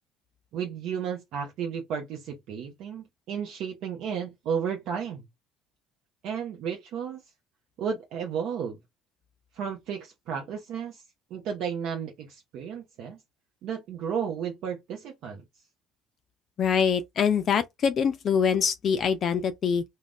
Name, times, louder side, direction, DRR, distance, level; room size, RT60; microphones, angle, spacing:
voice 1, 0.5-5.3 6.2-7.2 7.8-8.8 9.5-11.0 11.3-13.2 13.6-15.4, right 7 dB, 65° right, 0.7 m, -33 dB
voice 2, 16.6-19.8, left 7 dB, 50° left, 0.3 m, -24 dB
2.4 x 2.1 x 3.5 m
supercardioid pair, 85°, 0 cm